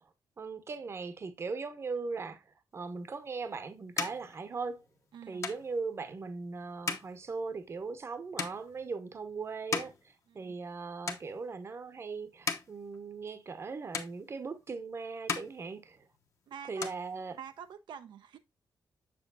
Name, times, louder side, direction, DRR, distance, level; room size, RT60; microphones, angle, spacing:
voice 1, 0.4-2.4 2.7-4.8 5.3-9.9 10.3-16.0 16.7-17.3, right 4 dB, 35° right, 0.8 m, -39 dB
sound 1, 3.1-10.8 11.0-11.8 12.2-13.7 13.9-14.8 15.1-16.4 16.6-17.7, left 5 dB, 40° left, 0.9 m, -40 dB
voice 2, 5.1-5.4 10.3-10.5 16.5-16.9 17.3-18.4, right 8 dB, 80° right, 0.6 m, -47 dB
6.9 x 6.9 x 2.4 m
wide cardioid pair, 155°, 8 cm